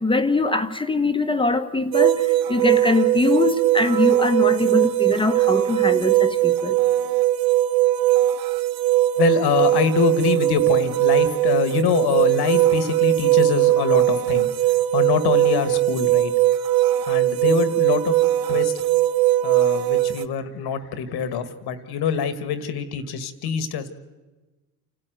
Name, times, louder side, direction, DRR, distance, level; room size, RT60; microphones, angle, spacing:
voice 1, 0.0-6.8, left 2 dB, 15° left, 7 dB, 1.4 m, -22 dB
sound 1, 1.9-20.3, right 14 dB, 65° right, 0.8 m, -20 dB
voice 2, 9.2-14.5 14.9-16.3 17.1-18.1 18.5-18.7 19.4-23.9, left 7 dB, 75° left, 12 dB, 1.8 m, -24 dB
28.0 x 13.0 x 9.2 m, 1.2 s
supercardioid pair, 65°, 39 cm